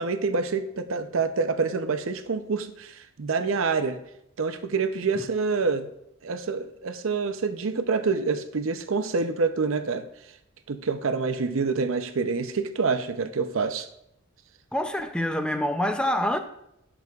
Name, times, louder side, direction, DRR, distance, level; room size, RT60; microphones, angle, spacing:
voice 1, 0.0-4.0 4.4-5.9 6.2-10.0 10.7-13.9, right 4 dB, 70° right, 0.6 m, -27 dB
voice 2, 14.7-16.4, left 1 dB, 5° left, 0.4 m, -26 dB
14.5 x 6.1 x 2.4 m
head